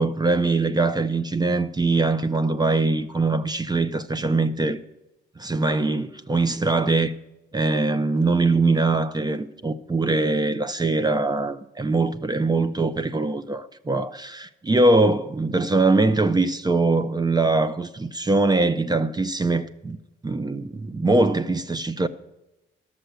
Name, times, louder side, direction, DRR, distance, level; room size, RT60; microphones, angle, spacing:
voice 1, 0.0-4.8 5.4-7.1 7.5-20.0 20.2-22.1, right 3 dB, 20° right, 0.7 m, -22 dB
12.0 x 6.7 x 7.8 m
cardioid pair, 90°, 20 cm